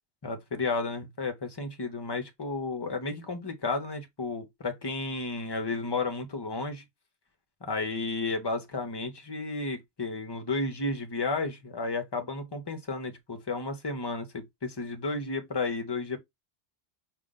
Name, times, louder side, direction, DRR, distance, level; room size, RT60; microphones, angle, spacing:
voice 1, 0.2-6.8 7.6-16.2, left 3 dB, 25° left, 0.7 m, -32 dB
4.9 x 2.4 x 3.8 m
omnidirectional pair, 1.1 m